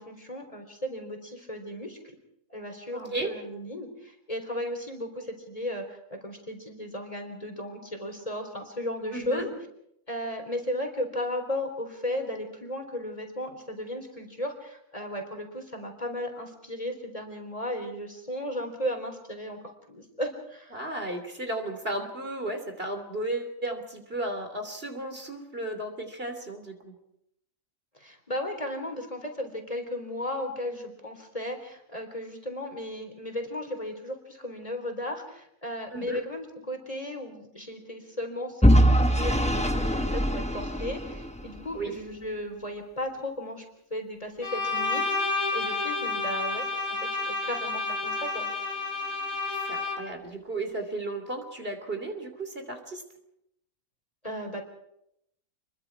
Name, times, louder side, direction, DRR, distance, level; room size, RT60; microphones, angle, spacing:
voice 1, 0.0-2.0 2.5-9.5 10.1-19.6 19.9-20.8 28.0-43.6 43.9-46.7 47.0-48.5 54.2-54.6, left 1 dB, 25° left, 5 dB, 3.9 m, -35 dB
voice 2, 2.9-3.3 9.1-9.5 20.7-26.9 35.9-36.2 41.7-41.9 49.6-53.0, right 2 dB, 45° right, 5 dB, 3.3 m, -34 dB
Vehicle / Engine, 38.6-41.6, equal, 5° left, 1.1 m, -22 dB
Bowed string instrument, 44.4-50.2, left 3 dB, 85° left, 3.4 m, -30 dB
28.5 x 22.5 x 4.8 m, 0.78 s
omnidirectional pair, 1.4 m